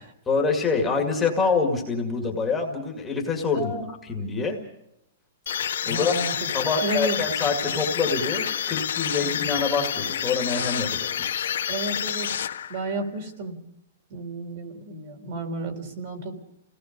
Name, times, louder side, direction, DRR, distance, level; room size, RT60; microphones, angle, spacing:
voice 1, 0.3-3.7 4.0-4.6 5.8-6.1 6.5-11.6, left 4 dB, 10° left, 0 dB, 2.1 m, -26 dB
voice 2, 3.5-3.9 5.9-6.4 6.8-7.2 9.2-9.3 11.7-12.3 12.7-13.7 14.1-16.4, right 2 dB, 40° right, 5 dB, 3.9 m, -32 dB
sound 1, 5.5-13.0, left 9 dB, 85° left, 1.6 m, -28 dB
30.0 x 18.0 x 5.3 m, 0.79 s
hypercardioid pair, 180°, 0 cm